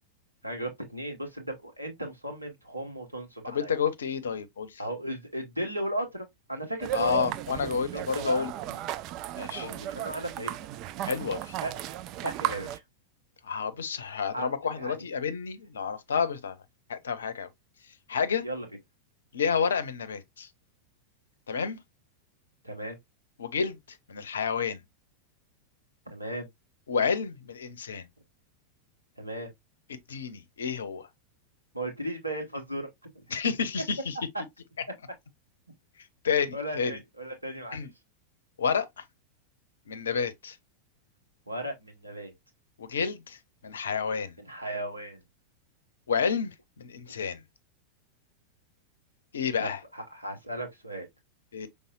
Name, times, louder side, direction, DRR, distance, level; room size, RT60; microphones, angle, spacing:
voice 1, 0.4-3.7 4.8-7.2 7.9-8.5 9.5-10.7 11.6-11.7 12.2-12.8 14.3-14.5 14.8-15.0 18.4-18.7 22.6-23.0 26.1-26.5 29.2-29.5 31.7-32.9 33.1-33.2 34.3-34.4 36.5-37.9 41.5-42.3 44.4-45.2 49.6-51.1, right 1 dB, 85° right, 1.3 m, -36 dB
voice 2, 3.5-4.8 6.9-8.5 9.4-9.7 11.0-11.6 13.4-16.6 16.9-17.5 18.1-18.4 19.3-20.5 21.5-21.8 23.4-24.8 26.9-28.1 29.9-31.1 33.3-34.2 36.2-37.0 37.7-37.9 38.6-39.0 39.9-40.6 42.8-44.4 46.1-47.4 49.3-49.8 51.5-51.7, left 6 dB, 65° left, 0.6 m, -30 dB
sound 1, 6.8-12.8, right 13 dB, 40° right, 0.3 m, -35 dB
5.4 x 3.4 x 2.3 m
figure-of-eight pair, 90°, 0 cm